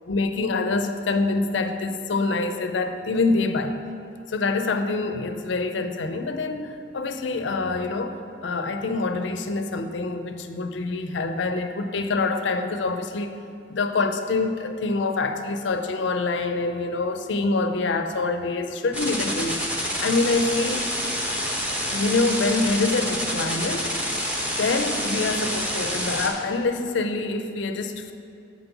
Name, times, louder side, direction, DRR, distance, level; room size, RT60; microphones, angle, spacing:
voice 1, 0.1-3.8 4.3-13.4 13.7-19.6 20.0-20.9 21.9-24.0 24.6-28.1, left 3 dB, 75° left, 7 dB, 0.5 m, -25 dB
sound 1, 18.9-26.3, equal, 10° right, 0.9 m, -28 dB
7.3 x 5.3 x 6.0 m, 2.6 s
head